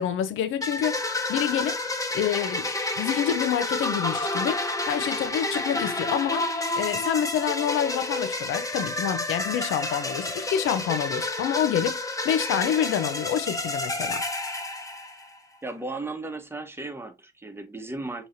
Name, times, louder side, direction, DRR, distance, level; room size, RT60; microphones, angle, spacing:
voice 1, 0.0-1.8 2.1-2.7 3.0-12.0 12.2-14.2, left 9 dB, 85° left, 0.6 m, -27 dB
sound 1, 0.6-15.4, left 2 dB, 15° left, 1.1 m, -30 dB
voice 2, 15.6-18.3, right 2 dB, 10° right, 1.1 m, -35 dB
6.3 x 3.0 x 2.6 m
cardioid pair, 90°, 20 cm